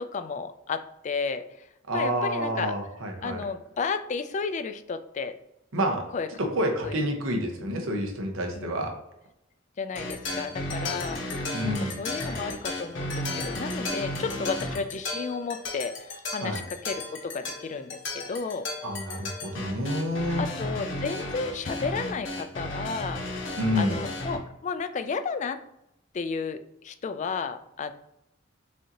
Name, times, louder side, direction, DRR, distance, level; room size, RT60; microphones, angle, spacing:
voice 1, 0.0-1.4 1.9-2.7 3.2-5.3 6.1-6.3 6.8-7.0 8.5-8.9 9.8-11.5 11.8-15.9 16.3-18.7 20.4-23.2 23.7-25.6 26.1-26.6 26.8-27.9, left 5 dB, 35° left, 10 dB, 0.3 m, -32 dB
voice 2, 1.9-3.4 5.7-6.0 6.4-8.9 11.5-12.0 16.4-16.6 18.8-20.4 23.6-24.0, equal, 85° right, 2 dB, 0.9 m, -28 dB
sound 1, 10.0-24.4, left 1 dB, 65° left, 1.0 m, -34 dB
6.3 x 2.7 x 2.9 m, 0.85 s
head